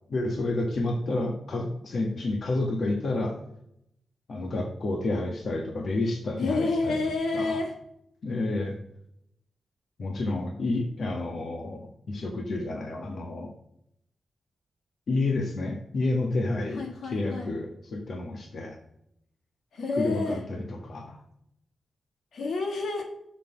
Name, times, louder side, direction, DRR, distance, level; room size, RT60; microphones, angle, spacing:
voice 1, 0.1-3.4 4.3-7.0 7.3-7.6 8.2-8.7 10.0-13.5 15.1-18.8 20.0-21.2, left 2 dB, 65° left, 2 dB, 1.4 m, -30 dB
voice 2, 6.4-7.8 16.8-17.5 19.7-20.4 22.3-23.0, left 3 dB, 85° left, 2 dB, 1.7 m, -29 dB
6.6 x 5.9 x 5.6 m, 0.74 s
wide cardioid pair, 105°, 0 cm